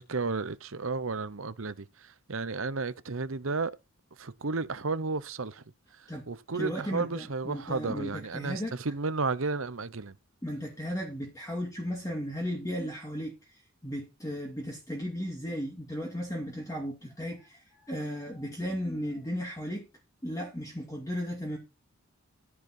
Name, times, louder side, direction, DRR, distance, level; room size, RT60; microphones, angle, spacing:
voice 1, 0.0-3.7 4.2-5.6 5.9-10.2, right 4 dB, 65° right, 0.9 m, -33 dB
voice 2, 6.5-8.7 10.4-19.9 20.2-21.6, equal, 15° left, 2.3 m, -35 dB
13.5 x 7.3 x 4.5 m
head